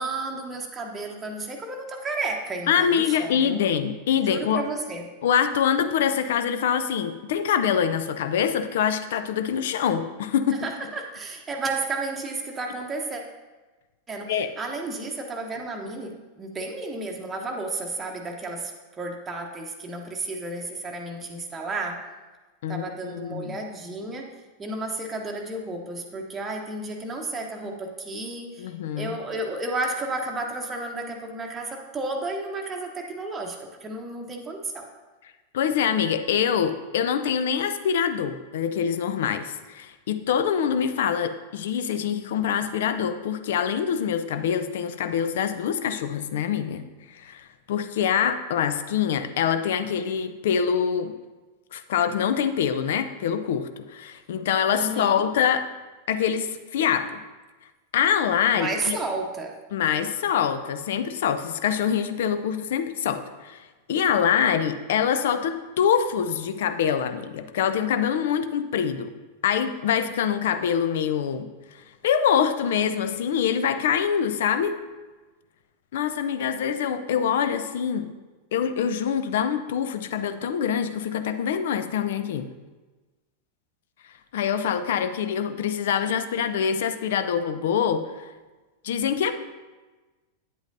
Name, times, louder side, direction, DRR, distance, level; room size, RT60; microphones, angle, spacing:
voice 1, 0.0-3.6 4.2-5.1 10.5-13.2 14.1-22.0 22.7-24.3 24.6-34.9 54.7-55.3 58.5-59.6, right 2 dB, 15° right, 1 dB, 0.9 m, -32 dB
voice 2, 2.7-4.6 5.2-10.7 14.3-14.5 22.6-23.6 28.6-29.1 35.5-51.1 51.7-55.7 56.1-57.2 57.9-59.0 59.7-69.1 69.4-74.7 75.9-78.1 78.5-82.5 84.3-88.3 88.8-89.3, left 8 dB, 55° left, 10 dB, 0.5 m, -25 dB
9.2 x 8.0 x 2.7 m, 1.2 s
figure-of-eight pair, 90°, 0 cm